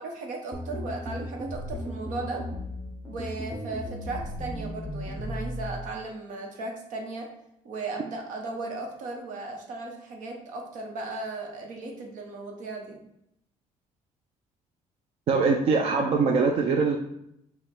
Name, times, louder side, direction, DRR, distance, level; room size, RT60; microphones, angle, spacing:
voice 1, 0.0-2.4 3.1-7.3 7.6-13.0, right 3 dB, 80° right, 2 dB, 1.1 m, -36 dB
sound 1, 0.5-5.9, equal, 5° left, 0.7 m, -36 dB
voice 2, 15.3-17.0, right 4 dB, 50° right, 2 dB, 0.5 m, -22 dB
5.0 x 2.4 x 4.4 m, 0.77 s
cardioid pair, 130°, 13 cm